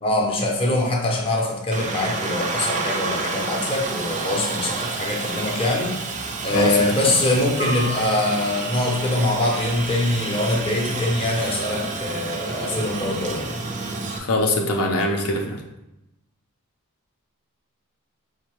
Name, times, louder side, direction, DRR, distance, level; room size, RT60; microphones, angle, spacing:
voice 1, 0.0-5.9 6.4-13.5, left 1 dB, 25° left, -1 dB, 0.6 m, -23 dB
Aircraft, 1.7-14.2, right 3 dB, 35° right, 0.4 m, -29 dB
voice 2, 14.2-15.6, left 2 dB, 70° left, 1 dB, 0.5 m, -22 dB
5.2 x 2.2 x 2.9 m, 0.90 s
head